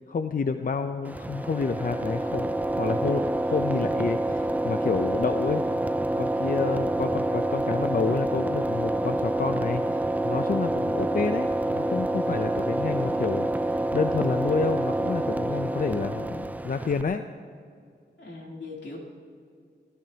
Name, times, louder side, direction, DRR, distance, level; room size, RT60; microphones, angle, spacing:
voice 1, 0.1-2.5 2.8-5.7 6.2-17.2, left 5 dB, 50° left, 8 dB, 0.6 m, -29 dB
sound 1, 1.0-17.0, right 1 dB, 10° right, 0.4 m, -27 dB
voice 2, 18.2-19.0, left 3 dB, 85° left, -2 dB, 3.1 m, -42 dB
23.0 x 15.0 x 2.9 m, 2.3 s
wide cardioid pair, 75°, 18 cm